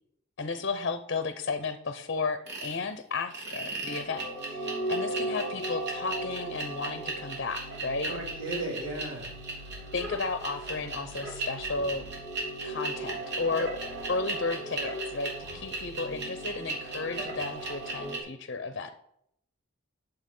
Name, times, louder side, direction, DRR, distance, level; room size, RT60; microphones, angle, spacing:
voice 1, 0.4-8.2 9.9-12.1 12.6-13.7 14.1-18.9, left 4 dB, 55° left, 9 dB, 0.7 m, -33 dB
sound 1, 2.5-2.8 3.3-18.2, right 2 dB, 55° right, 3.0 m, -35 dB
voice 2, 8.0-9.3, right 1 dB, 75° right, -2 dB, 3.6 m, -35 dB
10.0 x 7.0 x 5.4 m, 0.72 s
head